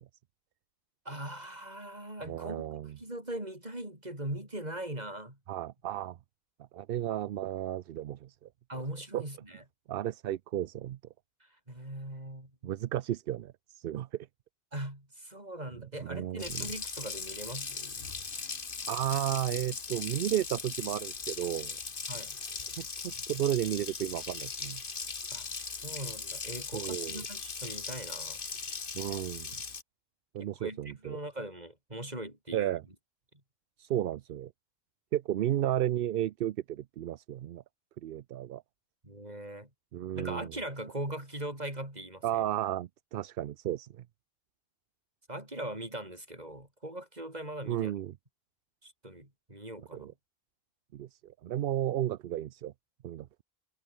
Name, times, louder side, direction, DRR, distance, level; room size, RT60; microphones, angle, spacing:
voice 1, 1.0-2.6 3.0-5.4 8.7-9.6 11.4-12.8 14.7-18.1 22.1-22.4 25.3-28.4 30.4-32.7 39.0-39.7 40.1-42.4 45.3-47.9 48.8-50.1, right 1 dB, 40° right, 6.3 m, -41 dB
voice 2, 2.2-3.0 5.5-6.2 6.7-8.5 9.1-9.2 9.9-11.0 12.6-14.3 16.0-16.7 18.9-21.8 22.8-24.8 26.7-27.2 28.9-29.6 30.3-31.2 32.5-32.8 33.8-34.5 35.1-37.6 38.0-38.6 39.9-40.5 42.2-44.0 47.7-48.2 49.9-50.1 50.9-52.7 53.0-53.3, right 12 dB, 70° right, 0.7 m, -33 dB
Water tap faucet, 16.4-29.8, left 5 dB, 60° left, 1.7 m, -39 dB
omnidirectional pair, 1.0 m